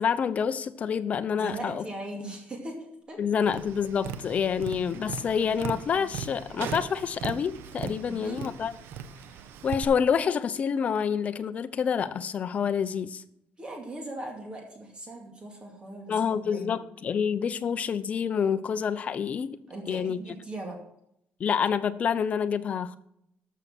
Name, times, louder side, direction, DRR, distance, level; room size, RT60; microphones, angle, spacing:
voice 1, 0.0-1.8 3.2-8.7 9.6-13.2 16.1-19.6 19.9-20.2 21.4-23.0, left 7 dB, 40° left, 0.7 m, -27 dB
voice 2, 1.3-3.2 8.0-8.5 13.6-16.8 19.7-20.8, right 1 dB, 25° right, 2.4 m, -39 dB
Tap, 3.5-9.8, right 7 dB, 75° right, 0.9 m, -38 dB
13.0 x 6.5 x 6.0 m
cardioid pair, 155°, 4 cm